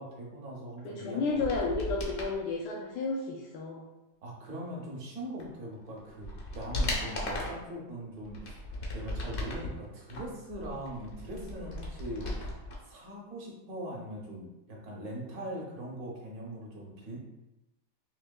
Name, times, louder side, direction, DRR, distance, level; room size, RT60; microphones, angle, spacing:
voice 1, 0.0-1.8 4.2-8.6 8.9-12.5 12.8-17.2, right 1 dB, 60° right, -2 dB, 1.3 m, -41 dB
voice 2, 0.8-3.8, left 3 dB, 75° left, -3 dB, 1.2 m, -32 dB
sound 1, 1.4-2.3 5.4-5.5 6.0-7.7 8.2-9.7 10.1-12.8 13.0-13.1, left 1 dB, 50° left, 0.9 m, -36 dB
5.4 x 3.0 x 2.2 m, 0.97 s
omnidirectional pair, 1.9 m